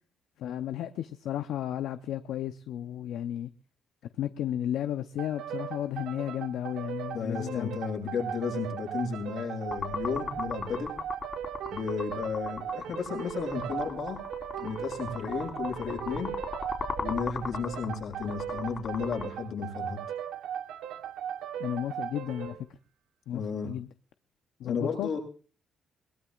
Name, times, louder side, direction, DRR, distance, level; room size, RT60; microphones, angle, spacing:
voice 1, 0.4-3.5 4.2-7.8 21.6-22.6 23.3-23.9 24.6-25.1, left 11 dB, 85° left, 10 dB, 0.7 m, -33 dB
sound 1, 5.2-22.6, right 10 dB, 85° right, 1.2 m, -38 dB
voice 2, 7.1-10.9 11.7-14.2 14.6-16.3 17.0-20.0 23.3-23.7 24.6-25.2, left 5 dB, 70° left, -1 dB, 7.4 m, -33 dB
sound 2, 9.7-19.2, left 5 dB, 45° left, 4.0 m, -37 dB
22.0 x 20.0 x 2.4 m, 0.39 s
cardioid pair, 90°, 0 cm